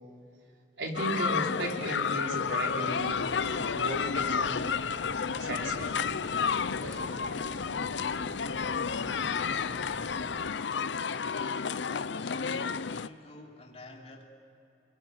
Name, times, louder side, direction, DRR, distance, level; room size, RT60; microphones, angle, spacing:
voice 1, 0.8-3.3 3.7-4.6 5.4-6.0 6.7-7.2, right 1 dB, 85° right, 1 dB, 3.8 m, -35 dB
sound 1, 0.9-13.1, left 6 dB, 85° left, 0.6 m, -31 dB
sound 2, 3.0-10.5, right 1 dB, 65° right, 1.7 m, -47 dB
voice 2, 9.3-10.2 11.9-14.3, left 1 dB, 35° left, 1 dB, 3.1 m, -49 dB
30.0 x 23.0 x 8.2 m, 2.8 s
head